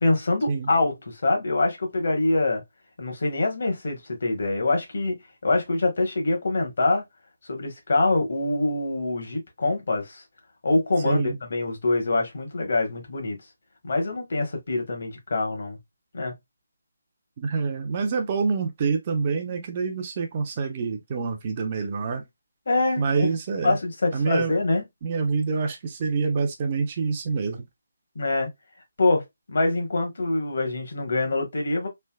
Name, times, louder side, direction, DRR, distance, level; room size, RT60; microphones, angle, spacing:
voice 1, 0.0-2.6 3.0-5.2 5.4-7.0 7.5-10.2 10.6-13.4 13.8-15.8 16.1-16.3 22.7-23.3 23.6-24.8 28.1-28.5 29.0-31.9, left 2 dB, 60° left, 1.1 m, -25 dB
voice 2, 11.0-11.4 17.4-22.2 23.0-23.8 24.1-24.5 25.0-27.7, right 5 dB, 25° right, 0.5 m, -26 dB
3.3 x 2.6 x 2.2 m
hypercardioid pair, 170°, 0 cm